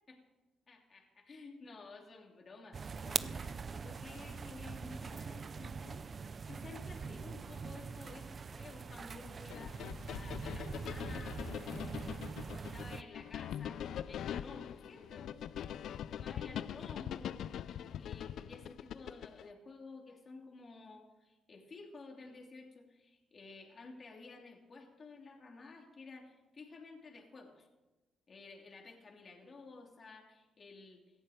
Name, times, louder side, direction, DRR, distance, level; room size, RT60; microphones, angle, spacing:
voice 1, 0.7-6.1 6.5-11.4 11.7-12.2 12.4-15.3 16.0-27.7 28.3-31.0, left 3 dB, 40° left, 0 dB, 3.0 m, -53 dB
sound 1, 2.7-13.0, right 5 dB, 40° right, 0.6 m, -43 dB
sound 2, 9.5-19.5, left 9 dB, 70° left, 0.5 m, -42 dB
17.5 x 14.0 x 5.1 m, 1.1 s
cardioid pair, 90°, 0 cm